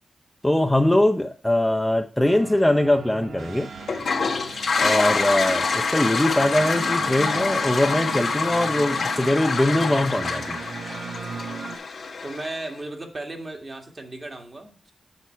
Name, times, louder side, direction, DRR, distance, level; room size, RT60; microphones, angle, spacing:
voice 1, 0.4-3.7 4.8-10.6, left 1 dB, 10° left, 5 dB, 0.7 m, -22 dB
sound 1, 2.2-11.8, right 5 dB, 85° right, 0.8 m, -38 dB
Toilet flush, 3.8-12.7, left 4 dB, 80° left, 1.4 m, -26 dB
voice 2, 12.2-14.9, right 2 dB, 40° right, 2 dB, 1.7 m, -35 dB
6.9 x 6.1 x 4.5 m, 0.39 s
cardioid pair, 70°, 0 cm